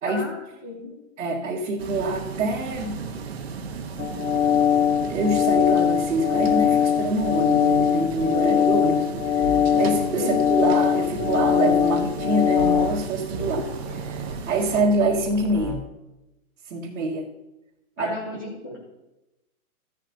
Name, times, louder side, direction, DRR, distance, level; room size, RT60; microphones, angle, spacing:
voice 1, 0.1-1.0 10.2-10.4 18.0-18.8, left 3 dB, 15° left, -3 dB, 0.6 m, -34 dB
voice 2, 1.2-3.0 5.0-15.9 16.7-17.3 18.0-18.4, right 2 dB, 65° right, -4 dB, 1.7 m, -26 dB
sound 1, 1.8-14.8, right 5 dB, 45° right, 1.2 m, -35 dB
sound 2, 4.0-12.9, left 9 dB, 80° left, 1.5 m, -21 dB
sound 3, 9.4-9.6 9.9-10.1 11.2-11.9 12.6-13.0 13.3-15.8, right 2 dB, 20° right, 0.9 m, -35 dB
15.0 x 11.0 x 2.8 m, 0.98 s
hypercardioid pair, 170°, 44 cm